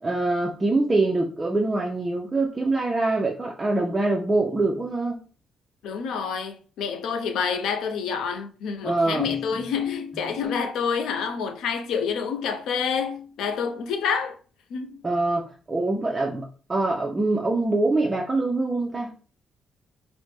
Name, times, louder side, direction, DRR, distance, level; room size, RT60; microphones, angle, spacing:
voice 1, 0.0-5.2 8.8-9.3 15.0-19.1, right 2 dB, 20° right, 0.4 m, -24 dB
voice 2, 5.8-14.4 14.7-15.0, left 6 dB, 80° left, 0.4 m, -28 dB
3.0 x 2.0 x 3.2 m
cardioid pair, 90°, 0 cm